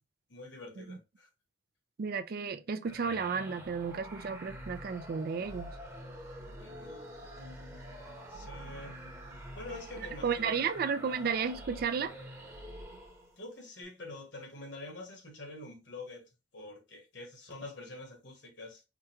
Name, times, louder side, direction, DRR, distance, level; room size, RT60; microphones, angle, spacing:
voice 1, 0.3-1.3 6.6-7.1 8.3-8.9 9.5-10.8 11.1-11.3 13.4-18.8, left 2 dB, 65° left, 1.3 m, -46 dB
voice 2, 2.0-5.7 10.2-12.1, right 6 dB, 50° right, 0.3 m, -33 dB
sound 1, 2.8-13.4, right 1 dB, 15° right, 0.9 m, -46 dB
4.9 x 2.2 x 2.8 m
head